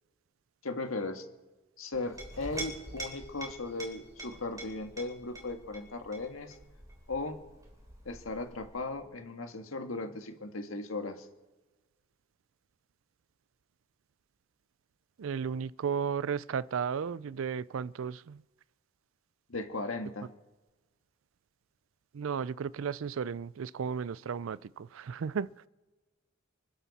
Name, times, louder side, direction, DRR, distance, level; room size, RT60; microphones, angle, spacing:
voice 1, 0.6-1.2 1.8-6.6 7.1-7.4 8.0-11.3 19.5-20.3, left 2 dB, 80° left, 1.6 m, -37 dB
Chink clink, 1.9-9.0, right 1 dB, 15° right, 3.3 m, -46 dB
voice 2, 15.2-18.4 22.1-25.5, right 6 dB, 70° right, 0.4 m, -34 dB
26.5 x 11.5 x 4.2 m
head